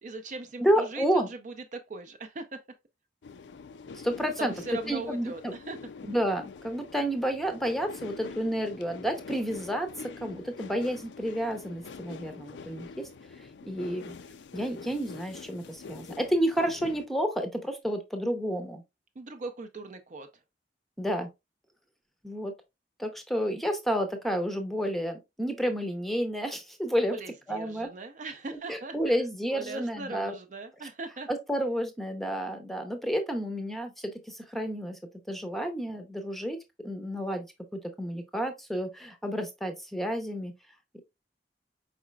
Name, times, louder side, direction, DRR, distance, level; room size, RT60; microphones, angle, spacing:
voice 1, 0.0-2.6 4.4-5.8 19.2-20.3 27.1-29.1 29.5-31.3, right 3 dB, 45° right, 0.5 m, -40 dB
voice 2, 0.6-1.3 4.0-4.5 4.9-5.5 6.0-9.9 10.2-13.1 13.7-14.1 14.5-18.8 21.0-21.3 22.2-22.5 23.0-27.2 27.5-27.9 28.5-30.3 31.3-35.0 35.3-36.6 36.8-37.5 37.7-40.5 40.9-41.0, equal, ahead, 0.6 m, -30 dB
sound 1, 3.2-17.1, left 5 dB, 85° left, 0.4 m, -45 dB
4.8 x 4.2 x 2.3 m
head